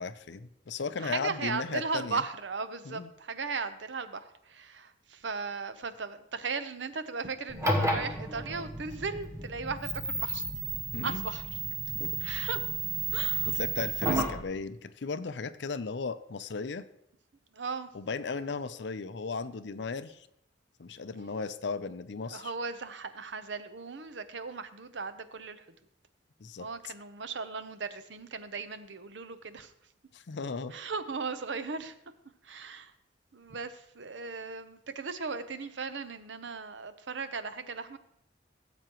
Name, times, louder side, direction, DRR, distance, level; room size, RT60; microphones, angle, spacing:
voice 1, 0.0-2.2 2.9-3.1 10.9-11.3 12.0-12.2 13.5-16.9 17.9-20.3 20.8-22.5 26.4-26.7 30.1-30.8, left 4 dB, 70° left, 13 dB, 0.6 m, -36 dB
voice 2, 1.0-10.4 11.0-11.4 12.2-12.6 13.1-13.5 17.5-17.9 22.2-25.6 26.6-29.7 30.7-31.9 32.4-32.9 33.3-38.0, right 4 dB, 75° right, 11 dB, 0.7 m, -37 dB
sound 1, 7.5-14.4, right 3 dB, 15° right, 1.0 m, -32 dB
17.0 x 7.9 x 3.0 m, 0.78 s
head